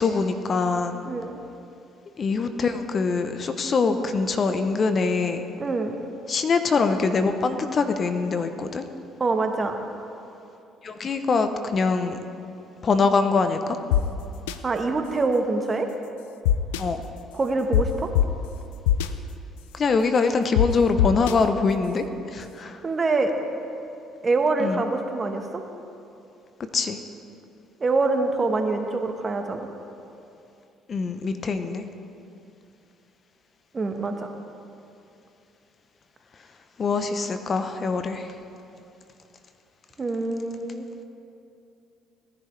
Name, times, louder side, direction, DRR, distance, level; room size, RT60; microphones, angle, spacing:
voice 1, 0.0-1.0 2.2-5.5 6.3-8.8 10.8-12.2 12.8-13.8 16.8-17.0 19.7-22.8 24.6-24.8 26.7-27.0 30.9-31.8 36.8-38.3, left 4 dB, 45° left, 8 dB, 0.8 m, -24 dB
voice 2, 1.0-1.4 5.6-6.0 9.2-9.8 14.6-15.9 17.3-18.1 22.8-23.3 24.2-25.5 27.8-29.6 33.7-34.1 40.0-40.9, right 3 dB, 35° right, 5 dB, 1.3 m, -25 dB
sound 1, 13.9-14.0 14.5-14.6 16.4-16.8 17.7-17.8 18.1-18.2 18.9-19.1 20.6-20.7 21.0-21.3, left 11 dB, 85° left, 0.4 m, -19 dB
18.5 x 10.5 x 3.3 m, 2.7 s
hypercardioid pair, 55°, 0 cm